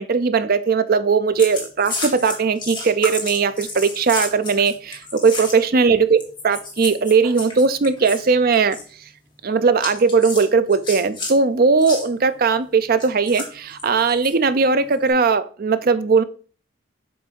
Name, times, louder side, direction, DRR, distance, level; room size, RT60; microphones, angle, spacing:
voice 1, 0.0-8.8 9.4-16.2, right 5 dB, 45° right, 12 dB, 0.5 m, -18 dB
sound 1, 1.4-5.8 6.2-8.2 8.5-8.9 9.8-11.4 11.8-12.1 13.0-14.3 14.9-15.1, left 3 dB, 25° left, 1.6 m, -31 dB
7.7 x 2.7 x 5.3 m, 0.41 s
head